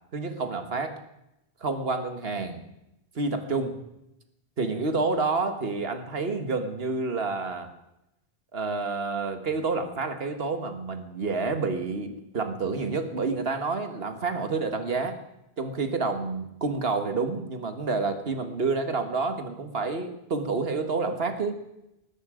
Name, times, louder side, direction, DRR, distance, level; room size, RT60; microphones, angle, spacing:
voice 1, 0.1-1.0 1.6-2.6 3.2-3.8 4.6-7.7 8.5-15.2 15.6-21.6, right 4 dB, 70° right, 8 dB, 1.8 m, -29 dB
19.5 x 14.0 x 5.1 m, 0.87 s
omnidirectional pair, 1.1 m